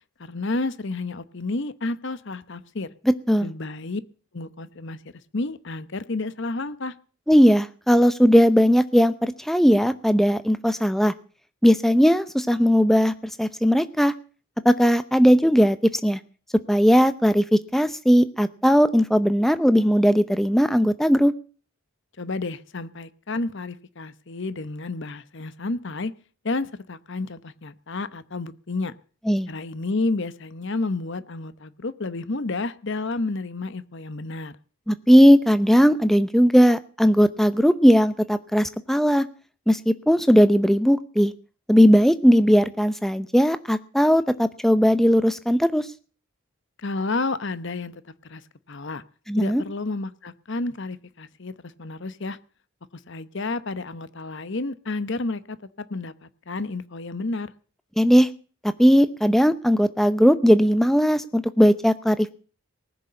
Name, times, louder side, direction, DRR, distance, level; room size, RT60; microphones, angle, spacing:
voice 1, 0.2-2.9 3.4-4.0 4.3-5.0 5.3-6.9 22.2-26.1 26.4-28.9 29.5-34.6 46.8-48.4 48.7-49.0 49.4-52.4 53.1-57.5, left 3 dB, 55° left, 14 dB, 0.9 m, -30 dB
voice 2, 7.3-11.1 11.6-13.1 13.4-14.1 14.6-15.8 16.0-16.2 16.7-21.3 29.3-29.5 34.9-39.2 39.7-41.3 41.7-45.9 49.3-49.6 58.0-58.3 58.8-62.3, equal, ahead, 12 dB, 0.7 m, -18 dB
19.0 x 6.8 x 8.6 m, 0.41 s
head